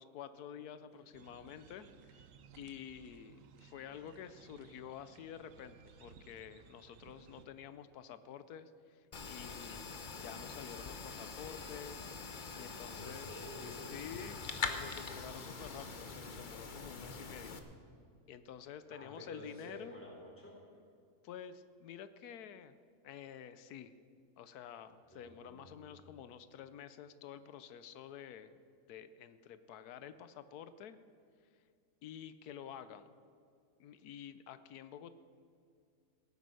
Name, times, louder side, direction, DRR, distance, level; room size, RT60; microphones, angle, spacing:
voice 1, 0.0-2.3 2.6-12.0 12.5-13.3 13.9-17.6 18.3-20.0 21.2-22.8 23.0-23.9 24.4-28.6 28.9-31.0 32.0-33.1 33.8-35.1, left 8 dB, 85° left, 13 dB, 1.2 m, -50 dB
sound 1, 1.1-7.5, right 6 dB, 65° right, 1.1 m, -60 dB
sound 2, 9.1-17.6, left 4 dB, 40° left, 0.9 m, -44 dB
voice 2, 13.0-14.0 18.9-20.5 25.1-25.9, left 1 dB, 10° left, -3 dB, 4.0 m, -51 dB
17.0 x 9.4 x 6.3 m, 2.3 s
omnidirectional pair, 1.6 m